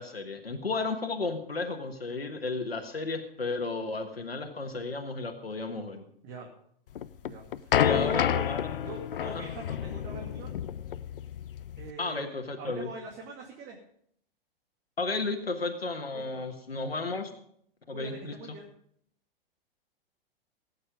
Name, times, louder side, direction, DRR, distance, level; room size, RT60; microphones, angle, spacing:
voice 1, 0.0-6.0 7.7-8.9 9.3-9.4 12.0-12.9 15.0-17.3 17.9-18.3, left 3 dB, 85° left, 4 dB, 1.6 m, -33 dB
sound 1, 7.0-11.9, left 10 dB, 65° left, 0.7 m, -29 dB
voice 2, 7.2-8.5 8.8-10.6 11.8-13.8 16.1-16.4 17.9-18.7, right 4 dB, 35° right, 1 dB, 2.3 m, -43 dB
17.0 x 8.7 x 5.2 m, 0.66 s
figure-of-eight pair, 100°, 29 cm